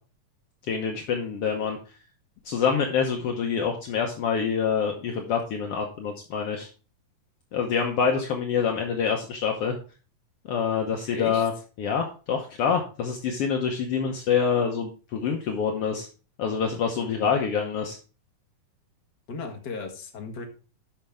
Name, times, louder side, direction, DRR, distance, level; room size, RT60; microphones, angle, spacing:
voice 1, 0.7-1.8 2.4-6.7 7.5-9.8 10.5-11.5 11.8-16.1 16.4-18.0, left 6 dB, 75° left, 2 dB, 1.4 m, -26 dB
voice 2, 11.0-11.4 19.3-20.4, left 4 dB, 45° left, 3 dB, 1.5 m, -35 dB
11.5 x 6.0 x 3.4 m, 0.37 s
omnidirectional pair, 3.9 m